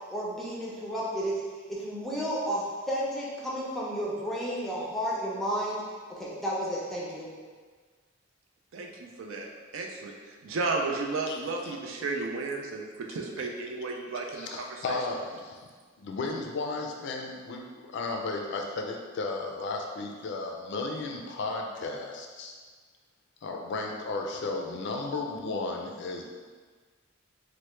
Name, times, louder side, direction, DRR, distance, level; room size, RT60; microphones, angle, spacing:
voice 1, 0.1-1.4 1.7-5.8 6.1-7.3, equal, ahead, -6 dB, 0.5 m, -32 dB
voice 2, 8.7-9.5 9.7-10.1 10.4-15.0, right 3 dB, 70° right, 1 dB, 0.4 m, -33 dB
voice 3, 14.3-15.6 16.0-22.6 23.4-26.2, left 3 dB, 60° left, 1 dB, 0.3 m, -34 dB
3.2 x 2.1 x 3.0 m, 1.5 s
head